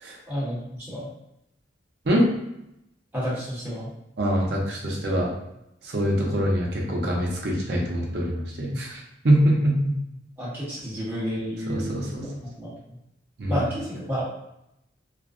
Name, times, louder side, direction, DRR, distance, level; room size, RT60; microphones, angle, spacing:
voice 1, 0.3-1.1 3.1-3.9 10.4-11.9 12.2-12.7 13.5-14.2, equal, 10° right, -9 dB, 1.0 m, -30 dB
voice 2, 4.2-5.3 5.8-9.0 9.2-9.9 11.7-12.3 13.4-13.5, equal, 60° right, -2 dB, 0.6 m, -24 dB
2.4 x 2.1 x 2.4 m, 0.83 s
head